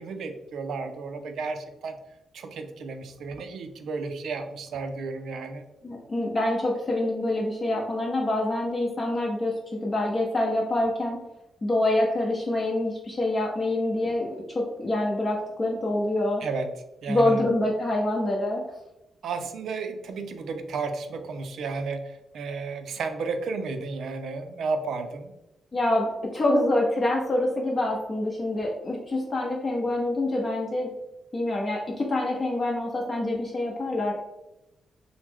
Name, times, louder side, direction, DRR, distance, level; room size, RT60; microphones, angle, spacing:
voice 1, 0.0-2.0 2.3-5.6 16.4-16.7 17.0-17.4 19.2-25.3, right 4 dB, 75° right, 7 dB, 0.4 m, -33 dB
voice 2, 5.8-9.5 9.8-11.2 11.6-16.4 17.1-18.6 25.7-30.9 31.3-34.1, left 1 dB, 35° left, -3 dB, 0.7 m, -26 dB
3.1 x 2.0 x 3.4 m, 0.92 s
cardioid pair, 90°, 0 cm